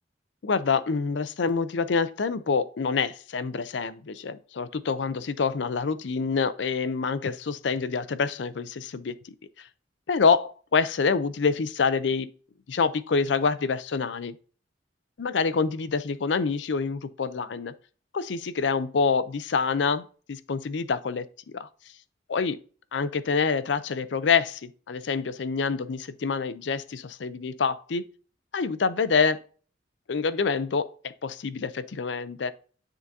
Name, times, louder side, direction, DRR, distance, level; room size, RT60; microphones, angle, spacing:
voice 1, 0.4-9.2 9.6-9.7 10.1-12.3 12.7-14.3 15.2-17.7 18.1-21.2 21.5-21.7 22.3-22.6 22.9-28.0 28.5-29.4 30.1-30.9 31.2-32.5, left 5 dB, 75° left, 0.5 m, -26 dB
9.6 x 3.8 x 2.6 m
head